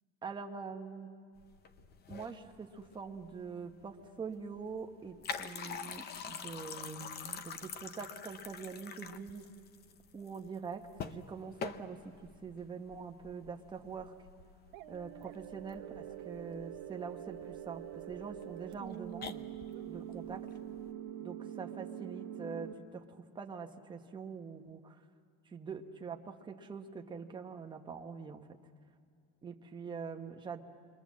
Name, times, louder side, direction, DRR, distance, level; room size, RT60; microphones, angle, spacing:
voice 1, 0.2-1.2 2.1-9.5 10.1-14.1 14.9-19.4 19.8-20.5 21.2-25.0 25.5-28.5 29.4-30.6, right 5 dB, 15° right, 3 dB, 1.0 m, -44 dB
sound 1, 1.4-20.9, left 6 dB, 30° left, 0.7 m, -47 dB
sound 2, 14.7-22.7, right 12 dB, 85° right, 1.1 m, -45 dB
28.5 x 23.0 x 7.4 m, 2.1 s
cardioid pair, 175°, 31 cm